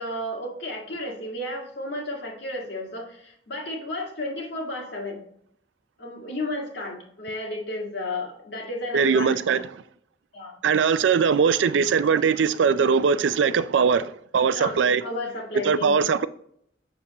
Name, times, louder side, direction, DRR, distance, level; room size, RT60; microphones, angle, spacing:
voice 1, 0.0-5.2 6.0-9.4 10.3-10.6 14.5-16.0, left 1 dB, 70° left, 1.9 m, -33 dB
voice 2, 8.9-9.7 10.6-15.0 15.6-16.3, right 6 dB, 85° right, 0.4 m, -21 dB
6.9 x 6.5 x 2.9 m
head